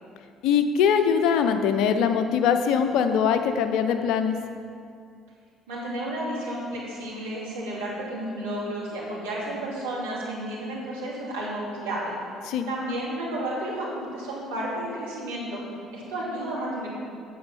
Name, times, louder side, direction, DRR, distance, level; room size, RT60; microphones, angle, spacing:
voice 1, 0.4-4.4 12.5-12.7, left 7 dB, 65° left, 8 dB, 0.6 m, -22 dB
voice 2, 5.7-12.2 12.7-15.6 15.9-16.9, right 1 dB, 80° right, -6 dB, 2.5 m, -32 dB
8.7 x 7.0 x 5.5 m, 2.3 s
hypercardioid pair, 55°, 0 cm